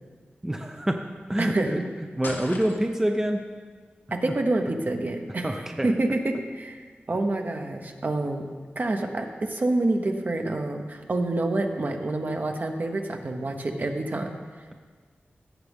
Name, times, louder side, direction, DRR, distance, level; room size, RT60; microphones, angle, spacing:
voice 1, 0.4-1.0 1.3-1.8 2.2-3.4 5.4-5.9, right 1 dB, 10° right, 4 dB, 0.5 m, -26 dB
voice 2, 1.4-1.8 4.1-5.5 5.8-6.8 7.1-8.4 8.8-14.4, right 2 dB, 50° right, 4 dB, 1.0 m, -27 dB
sound 1, 2.2-3.2, left 2 dB, 55° left, 1.1 m, -39 dB
17.0 x 7.0 x 3.6 m, 1.5 s
wide cardioid pair, 90°, 4 cm